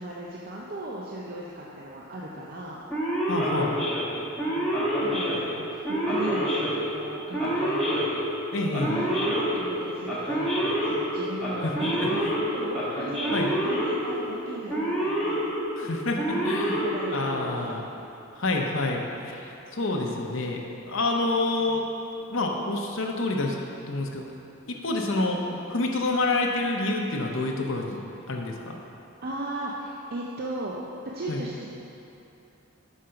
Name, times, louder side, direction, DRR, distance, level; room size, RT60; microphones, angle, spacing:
voice 1, 0.0-2.8 4.4-8.1 8.7-12.3 12.5-15.4 16.3-16.4 16.7-18.0 25.1-25.6 29.2-30.8 31.1-31.7, right 1 dB, 45° right, -4 dB, 0.5 m, -37 dB
Male speech man speaking / Siren, 2.9-17.6, equal, 5° left, 1.2 m, -28 dB
voice 2, 3.3-3.8 8.5-9.0 11.6-11.7 12.0-12.3 13.3-13.5 15.8-16.8 17.1-17.8 18.4-21.8 22.3-23.6 23.9-24.2 24.7-25.4 25.7-28.0 28.3-28.8 31.3-31.4, left 2 dB, 60° left, 0 dB, 0.8 m, -28 dB
6.4 x 5.0 x 5.7 m, 2.9 s
head